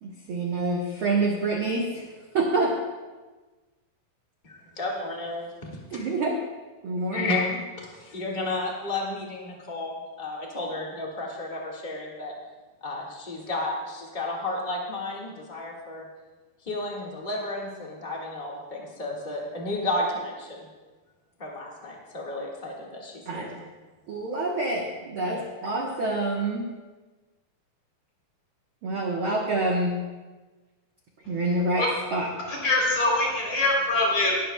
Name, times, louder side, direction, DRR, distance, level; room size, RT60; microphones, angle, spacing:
voice 1, 0.0-2.0 2.3-2.7 5.9-6.4 6.8-7.4 23.3-23.6 24.1-26.7 28.8-30.0 31.3-31.9 32.1-32.5, right 2 dB, 75° right, -1 dB, 1.2 m, -27 dB
voice 2, 4.4-5.5 7.1-7.5 7.8-12.3 12.8-16.0 16.6-20.7 21.4-23.5 25.3-25.4, left 2 dB, 85° left, -3 dB, 0.4 m, -32 dB
voice 3, 32.6-34.4, left 2 dB, 45° left, -3 dB, 4.4 m, -23 dB
18.5 x 12.5 x 2.2 m, 1.3 s
omnidirectional pair, 4.1 m